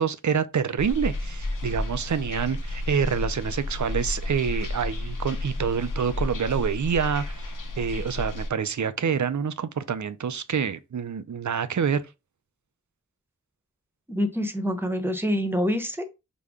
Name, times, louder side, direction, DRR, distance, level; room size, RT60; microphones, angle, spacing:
voice 1, 0.0-7.5 7.8-12.0, right 7 dB, 65° right, 0.5 m, -27 dB
sound 1, 0.8-8.5, left 1 dB, 80° left, 0.7 m, -31 dB
voice 2, 14.1-16.1, equal, 5° right, 0.8 m, -26 dB
5.1 x 2.2 x 3.5 m
wide cardioid pair, 50°, 31 cm